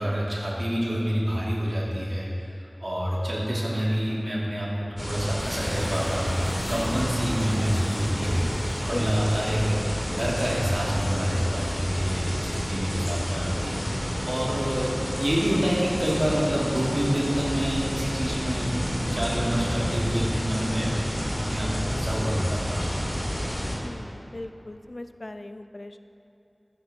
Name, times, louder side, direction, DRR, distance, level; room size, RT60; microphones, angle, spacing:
voice 1, 0.0-2.5 2.8-18.7 19.0-20.9 21.5-23.0, equal, 50° right, -6 dB, 2.7 m, -27 dB
sound 1, 5.0-23.8, equal, 35° left, 2.3 m, -30 dB
sound 2, 5.4-10.6, equal, ahead, 2.0 m, -44 dB
voice 2, 8.9-9.4 23.8-26.0, left 1 dB, 60° left, 9 dB, 0.4 m, -38 dB
14.5 x 8.3 x 3.7 m, 2.9 s
wide cardioid pair, 45°, 0 cm